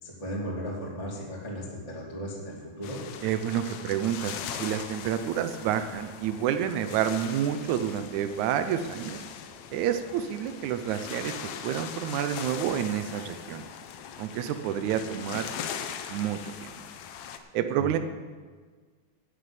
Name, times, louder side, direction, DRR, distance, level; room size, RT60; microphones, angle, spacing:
voice 1, 0.0-3.0 17.7-18.0, equal, 10° left, -5 dB, 2.0 m, -36 dB
sound 1, 2.8-17.4, left 8 dB, 85° left, 1.5 m, -40 dB
voice 2, 3.2-9.2 9.7-11.3 11.6-13.7 14.2-15.5 16.1-16.7 17.5-18.0, right 10 dB, 90° right, 9 dB, 1.6 m, -29 dB
11.5 x 6.8 x 9.0 m, 1.5 s
omnidirectional pair, 4.2 m